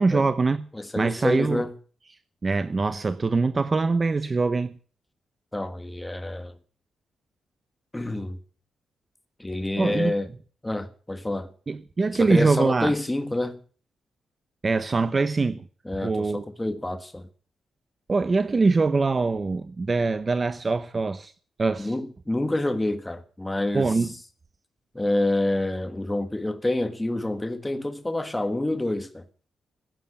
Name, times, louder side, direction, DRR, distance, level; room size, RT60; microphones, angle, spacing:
voice 1, 0.0-0.6 1.0-1.6 2.4-4.7 9.8-10.1 11.7-12.9 14.6-15.6 16.0-16.4 18.1-21.3 21.6-21.9 23.7-24.1, right 3 dB, 30° right, 0.8 m, -23 dB
voice 2, 0.7-1.7 5.5-6.5 7.9-8.4 9.4-10.3 10.6-11.5 12.1-13.6 15.8-17.3 21.8-24.1 24.9-29.2, left 1 dB, 10° left, 1.4 m, -27 dB
15.0 x 9.2 x 8.6 m
cardioid pair, 105°, 0 cm